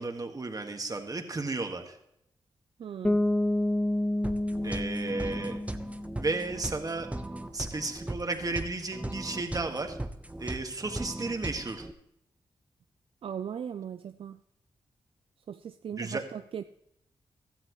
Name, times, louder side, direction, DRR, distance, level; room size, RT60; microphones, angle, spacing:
voice 1, 0.0-2.0 4.6-5.6 6.2-7.1 7.5-10.0 10.4-11.9 16.0-16.2, right 3 dB, 35° right, 5 dB, 1.9 m, -33 dB
voice 2, 2.8-3.2 13.2-14.4 15.5-16.6, right 8 dB, 65° right, 11 dB, 0.4 m, -38 dB
Bass guitar, 3.0-6.8, left 1 dB, 10° left, 0.7 m, -29 dB
sound 1, 4.2-11.9, right 1 dB, 15° right, 1.0 m, -39 dB
16.0 x 13.0 x 3.2 m, 0.77 s
supercardioid pair, 45°, 10 cm